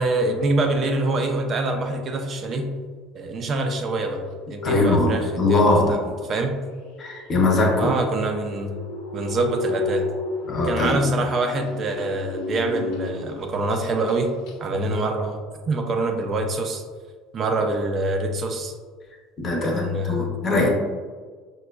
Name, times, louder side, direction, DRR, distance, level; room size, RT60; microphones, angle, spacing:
voice 1, 0.0-2.7 3.1-4.2 4.5-5.6 5.9-6.0 6.3-6.6 7.8-8.7 9.1-10.1 10.6-14.3 14.6-15.4 15.7-16.8 17.3-18.7 19.6-20.7, right 2 dB, 40° right, 5 dB, 0.4 m, -25 dB
sound 1, 4.3-13.6 13.9-14.2 14.5-14.6, left 2 dB, 70° left, 0.5 m, -31 dB
voice 2, 4.6-5.9 7.0-7.9 10.5-11.0 19.4-20.7, left 2 dB, 30° left, -1 dB, 0.7 m, -21 dB
4.9 x 2.2 x 2.2 m, 1.5 s
supercardioid pair, 115°, 0 cm